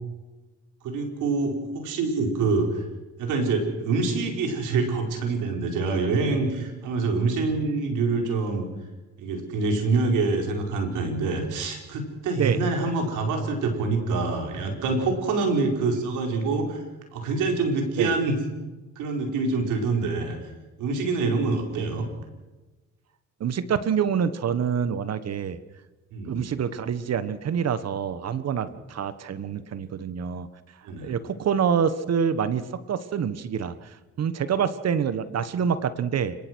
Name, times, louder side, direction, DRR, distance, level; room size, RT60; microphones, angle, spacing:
voice 1, 0.8-2.8 3.2-8.7 9.2-16.8 17.1-18.4 18.9-20.4 20.8-22.1 26.1-26.5 28.7-28.8 30.8-31.1, right 3 dB, 90° right, 3 dB, 5.1 m, -26 dB
voice 2, 23.4-25.6 26.3-30.5 31.0-32.6 32.9-36.4, right 7 dB, 55° right, 14 dB, 1.3 m, -26 dB
29.5 x 18.0 x 6.3 m, 1.2 s
cardioid pair, 90°, 30 cm